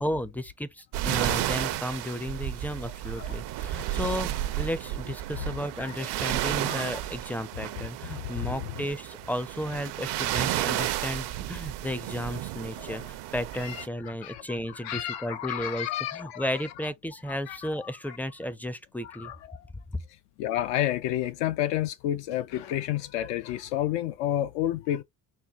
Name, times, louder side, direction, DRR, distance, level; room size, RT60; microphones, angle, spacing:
voice 1, 0.0-19.3 19.9-20.0, equal, 5° left, 0.4 m, -34 dB
sound 1, 0.9-13.9, right 14 dB, 65° right, 0.6 m, -32 dB
voice 2, 5.8-6.4 6.7-6.9 8.2-8.6 12.8-13.1 13.5-14.4 14.7-16.9 17.3-18.2 19.0-19.6 20.4-25.0, left 12 dB, 80° left, 0.6 m, -31 dB
4.3 x 2.2 x 3.6 m
supercardioid pair, 85°, 43 cm